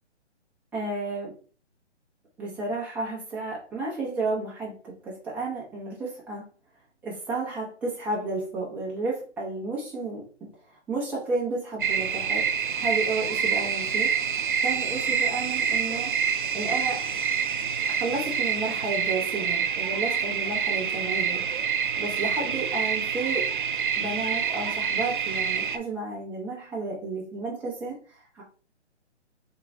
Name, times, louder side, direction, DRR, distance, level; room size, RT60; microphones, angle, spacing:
voice 1, 0.7-1.3 2.4-6.4 7.0-10.5 10.9-12.5 12.8-14.1 14.6-16.1 16.5-17.0 17.9-21.4 22.0-23.5 24.0-28.4, right 3 dB, 5° right, -5 dB, 0.7 m, -32 dB
sound 1, 11.8-25.8, right 6 dB, 45° right, 0.4 m, -27 dB
3.5 x 2.9 x 3.6 m, 0.38 s
figure-of-eight pair, 135°, 35 cm